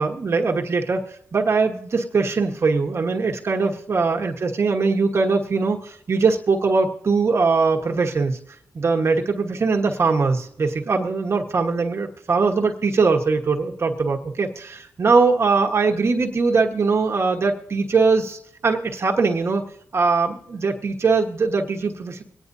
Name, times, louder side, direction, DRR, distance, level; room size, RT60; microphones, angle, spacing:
voice 1, 0.0-8.4 8.7-19.6 19.9-22.2, right 4 dB, 45° right, 2 dB, 1.2 m, -21 dB
24.0 x 9.7 x 2.7 m, 0.73 s
cardioid pair, 90°, 6 cm